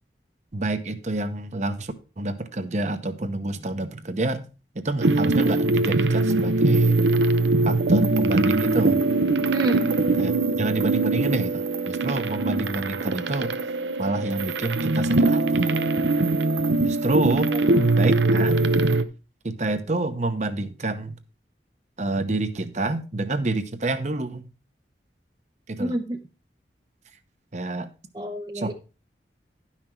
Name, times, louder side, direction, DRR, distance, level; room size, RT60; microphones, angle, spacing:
voice 1, 0.5-4.4 4.7-6.9 7.6-9.0 10.2-13.5 14.0-15.8 16.8-17.5 17.9-18.7 19.4-21.1 22.0-24.5 25.7-25.9 27.5-27.9 28.5-28.7, right 2 dB, 40° right, 10 dB, 0.9 m, -28 dB
sound 1, 5.0-19.0, right 2 dB, 90° right, 0.7 m, -22 dB
voice 2, 9.5-9.9 17.5-18.1 25.8-26.2 28.1-28.7, right 1 dB, 25° right, 4 dB, 0.6 m, -30 dB
11.0 x 5.9 x 4.5 m, 0.33 s
head